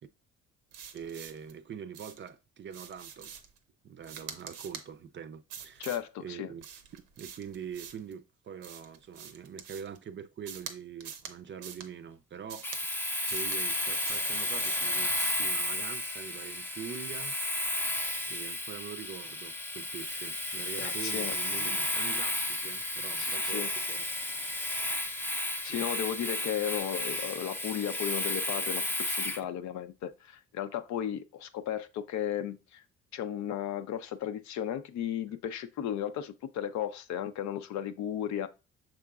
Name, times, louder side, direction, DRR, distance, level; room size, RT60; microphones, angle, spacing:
sound 1, 0.7-1.5 1.9-2.3 2.7-3.6 4.0-4.9 5.5-6.1 6.6-8.1 8.6-10.0 10.5-10.7 11.0-11.3 11.6-11.9 12.5-12.8 13.3-13.6 14.0-14.3 14.6-14.9 15.2-15.4, right 8 dB, 85° right, 0.7 m, -45 dB
voice 1, 0.9-3.3 3.8-5.9 6.2-6.6 6.9-13.0 13.3-17.6 18.3-24.1 25.7-25.9, right 7 dB, 40° right, 0.5 m, -44 dB
voice 2, 5.8-6.5 20.8-21.3 23.2-23.7 25.6-32.8 33.1-38.5, left 10 dB, 70° left, 0.6 m, -35 dB
Domestic sounds home sounds, 12.6-29.4, left 1 dB, 5° left, 0.5 m, -33 dB
6.1 x 3.7 x 2.3 m
supercardioid pair, 65°, 30 cm